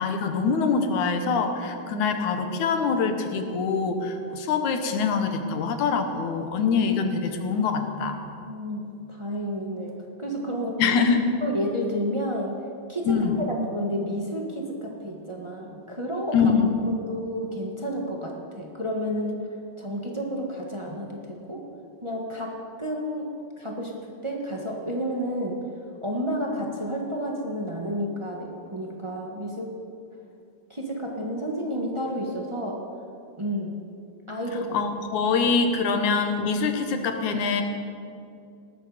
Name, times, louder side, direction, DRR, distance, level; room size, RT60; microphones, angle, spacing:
voice 1, 0.0-8.2 10.8-11.2 13.1-13.4 16.3-16.8 34.7-37.6, left 5 dB, 80° left, 6 dB, 2.6 m, -24 dB
voice 2, 8.4-10.9 11.4-12.6 12.9-16.7 17.1-19.4 19.8-21.6 22.0-23.3 23.6-23.9 24.2-25.6 26.0-29.7 30.7-32.8 33.4-33.8 34.3-34.8, equal, 20° right, -1 dB, 0.9 m, -31 dB
19.5 x 13.0 x 5.0 m, 2.5 s
omnidirectional pair, 3.4 m